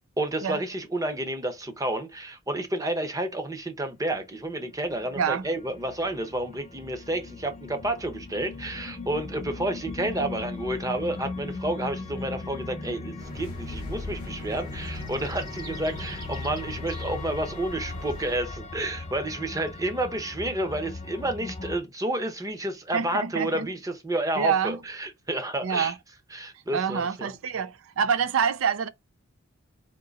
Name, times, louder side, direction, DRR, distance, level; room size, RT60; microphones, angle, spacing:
voice 1, 0.2-25.9 26.3-27.3, right 1 dB, 15° right, 0.8 m, -30 dB
sound 1, 4.1-21.8, left 3 dB, 35° left, 0.6 m, -39 dB
voice 2, 5.2-5.5 22.9-23.7 24.4-24.8 25.6-25.9 26.7-28.9, right 7 dB, 70° right, 0.4 m, -26 dB
sound 2, 13.2-18.4, right 1 dB, 45° right, 1.2 m, -44 dB
sound 3, 13.3-19.5, left 2 dB, 85° left, 0.7 m, -43 dB
3.7 x 2.8 x 4.0 m
head